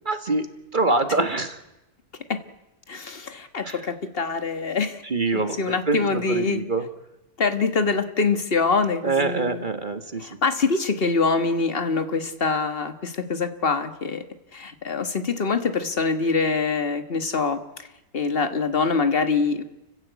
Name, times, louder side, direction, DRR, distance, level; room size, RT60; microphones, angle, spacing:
voice 1, 0.0-0.5 0.7-1.6 3.6-3.8 5.0-6.8 9.0-10.3, right 3 dB, 35° right, 8 dB, 1.6 m, -25 dB
voice 2, 2.9-5.0 5.3-6.6 7.4-9.7 10.2-14.2 14.5-17.9 18.1-19.6, left 4 dB, 40° left, 9 dB, 1.8 m, -24 dB
30.0 x 15.5 x 8.2 m, 0.95 s
omnidirectional pair, 1.6 m